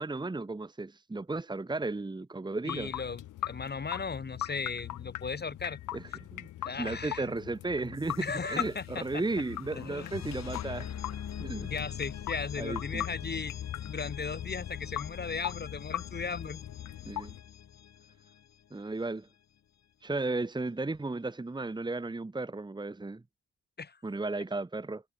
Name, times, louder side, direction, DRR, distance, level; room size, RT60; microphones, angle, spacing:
voice 1, 0.0-2.9 5.9-6.5 6.8-10.9 11.4-11.7 12.6-13.0 17.1-17.3 18.7-19.3 20.0-23.2 24.0-25.0, right 2 dB, 15° right, 1.6 m, -34 dB
voice 2, 2.6-5.8 6.6-7.2 8.2-9.2 9.7-10.1 11.7-13.5 13.8-16.6 23.8-24.0, left 5 dB, 35° left, 5.1 m, -37 dB
sound 1, 2.7-17.4, left 14 dB, 80° left, 5.1 m, -41 dB
sound 2, 8.0-18.8, left 9 dB, 60° left, 5.5 m, -42 dB
cardioid pair, 90°, 30 cm